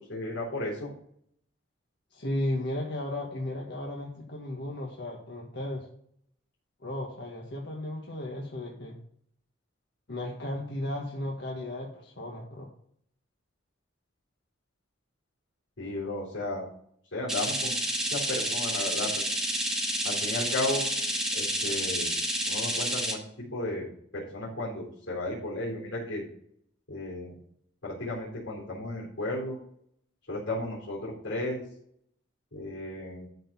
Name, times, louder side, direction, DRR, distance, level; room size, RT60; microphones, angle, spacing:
voice 1, 0.1-0.9 15.8-16.7 17.1-17.8 18.1-19.1 20.0-20.8 21.3-22.1 22.5-23.9 24.1-26.2 26.9-27.3 27.8-29.6 30.3-31.6 32.5-33.3, left 1 dB, 80° left, -6 dB, 3.9 m, -34 dB
voice 2, 2.1-5.9 6.8-9.0 10.1-12.7, left 1 dB, 60° left, -1 dB, 1.4 m, -35 dB
sound 1, 17.3-23.1, right 1 dB, 5° right, 1.2 m, -29 dB
12.0 x 4.5 x 5.5 m, 0.66 s
head